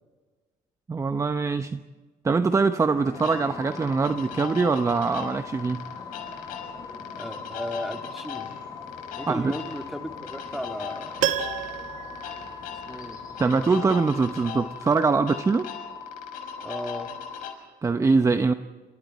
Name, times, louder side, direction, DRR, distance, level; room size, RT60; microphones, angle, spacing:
voice 1, 0.9-1.8 2.2-5.8 9.3-9.5 13.4-15.7 17.8-18.5, right 4 dB, 20° right, 9 dB, 0.9 m, -23 dB
sound 1, 2.9-14.6, left 3 dB, 30° left, 7.3 m, -46 dB
sound 2, 3.1-17.5, left 7 dB, 80° left, 6.1 m, -38 dB
voice 2, 7.2-8.5 9.2-11.3 12.9-13.2 16.6-17.1, equal, ahead, 4 dB, 2.5 m, -35 dB
Piano, 11.2-13.3 13.6-13.7, right 12 dB, 80° right, 1.4 m, -31 dB
28.0 x 27.0 x 4.3 m, 1.3 s
cardioid pair, 105°, 14 cm